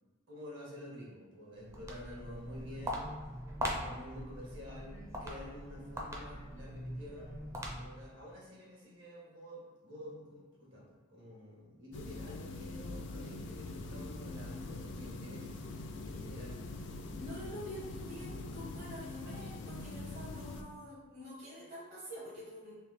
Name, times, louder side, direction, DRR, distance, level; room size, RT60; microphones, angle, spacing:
voice 1, 0.3-3.1 3.6-7.3 7.8-15.6 16.0-16.6, left 1 dB, 70° right, -5 dB, 1.5 m, -49 dB
Walk footsteps, 1.5-8.1, equal, 15° right, 0.5 m, -41 dB
sound 1, 11.9-20.6, left 2 dB, 60° left, 0.4 m, -43 dB
voice 2, 17.2-22.8, equal, 45° right, -8 dB, 1.0 m, -47 dB
3.3 x 2.7 x 4.0 m, 1.3 s
head